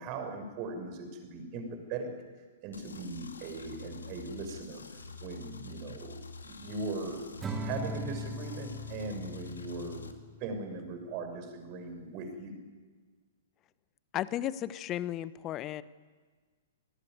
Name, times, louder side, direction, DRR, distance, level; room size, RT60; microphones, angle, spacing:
voice 1, 0.0-2.1 2.6-7.3 7.6-10.1 10.4-12.5, right 3 dB, 35° right, 6 dB, 6.4 m, -39 dB
sound 1, 2.7-10.1, left 4 dB, 75° left, 2.4 m, -47 dB
Acoustic guitar / Strum, 7.4-10.7, equal, 20° right, 3.3 m, -40 dB
voice 2, 14.1-15.8, left 12 dB, 30° left, 17 dB, 1.0 m, -34 dB
27.5 x 20.0 x 9.4 m, 1.5 s
figure-of-eight pair, 115°, 0 cm